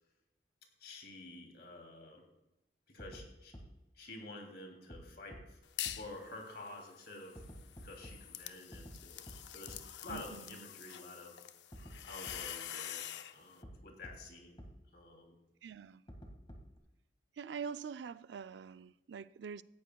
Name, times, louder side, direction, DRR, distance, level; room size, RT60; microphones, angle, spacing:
voice 1, 0.8-2.2 2.9-3.5 3.9-7.5 7.8-11.4 12.0-14.6 14.9-15.4, left 2 dB, 65° left, 2.9 m, -50 dB
sound 1, 3.0-3.2 3.5-3.6 4.9-5.0 5.3-5.4 5.8-5.9 7.3-8.1 8.7-8.9 9.3-9.4 9.7-9.8 10.1-10.2 11.7-11.9 12.3-12.4 13.6-13.7 14.0-14.1 14.6-14.7 16.1-16.8, equal, 30° left, 1.9 m, -49 dB
sound 2, 5.6-6.1 6.5-13.4, left 11 dB, 85° left, 0.6 m, -46 dB
voice 2, 15.6-16.0 17.4-19.6, right 6 dB, 90° right, 0.4 m, -44 dB
17.5 x 14.0 x 2.3 m
head